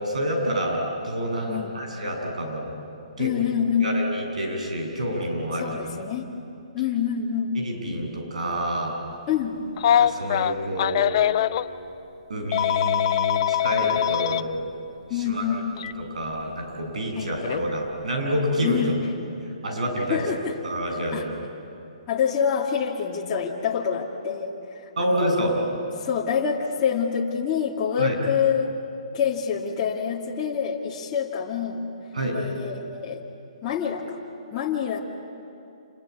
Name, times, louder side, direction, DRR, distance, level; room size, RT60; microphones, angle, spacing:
voice 1, 0.0-2.7 3.2-3.3 3.8-5.7 7.6-9.0 10.0-11.2 12.3-14.5 15.1-15.4 16.0-18.8 19.6-20.2 20.6-21.3 25.0-25.5 28.0-28.2 32.1-32.3, equal, 85° right, 1 dB, 7.8 m, -28 dB
voice 2, 1.5-1.8 3.2-3.9 5.5-6.3 6.7-7.6 9.3-9.6 15.1-15.9 17.2-17.3 18.6-19.0 20.1-20.5 20.9-21.3 22.1-25.6 26.0-28.7 29.1-31.9 32.3-33.2 33.6-34.2 34.5-35.0, left 7 dB, 25° left, -4 dB, 2.3 m, -26 dB
Telephone, 9.8-11.7 12.5-14.4 15.8-15.9 17.4-17.6, left 11 dB, 45° left, 0.7 m, -22 dB
27.5 x 22.0 x 9.5 m, 2.7 s
hypercardioid pair, 155°, 4 cm